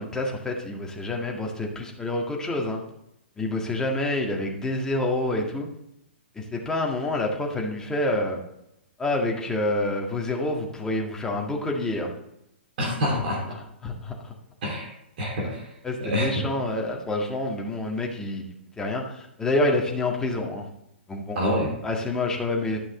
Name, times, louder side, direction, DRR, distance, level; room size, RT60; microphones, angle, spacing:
voice 1, 0.0-2.8 3.4-5.7 6.4-8.4 9.0-12.1 13.8-14.3 15.8-18.5 18.8-20.6 21.1-21.4 21.8-22.8, left 2 dB, 10° left, 0 dB, 1.8 m, -27 dB
voice 2, 12.8-13.4 14.6-14.9 15.2-15.6 16.0-16.5 21.3-21.7, equal, 55° right, -2 dB, 2.9 m, -26 dB
12.0 x 6.1 x 3.9 m, 0.81 s
figure-of-eight pair, 115°, 6 cm